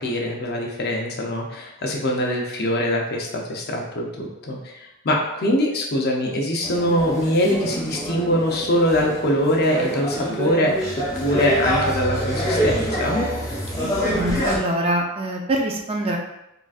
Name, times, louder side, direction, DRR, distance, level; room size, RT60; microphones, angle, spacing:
voice 1, 0.0-10.8 11.2-13.2, equal, 45° left, 0 dB, 0.6 m, -23 dB
sound 1, 6.6-14.6, equal, 15° left, 1.2 m, -26 dB
voice 2, 14.1-16.2, right 1 dB, 25° right, 0 dB, 0.3 m, -24 dB
3.7 x 2.4 x 2.4 m, 0.87 s
head